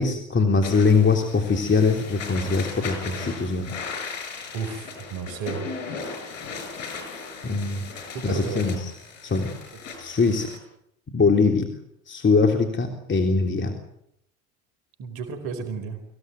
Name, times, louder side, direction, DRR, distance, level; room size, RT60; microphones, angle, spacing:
voice 1, 0.0-3.7 7.4-7.9 8.2-8.9 9.2-9.5 10.0-10.5 11.1-11.7 12.1-13.8, left 4 dB, 30° left, 5 dB, 3.5 m, -22 dB
sound 1, 0.6-10.6, left 4 dB, 75° left, 6.6 m, -37 dB
voice 2, 4.5-5.6 8.1-8.7 15.0-16.0, right 6 dB, 60° right, 7 dB, 5.1 m, -32 dB
24.5 x 17.0 x 9.4 m, 0.77 s
hypercardioid pair, 85°, 40 cm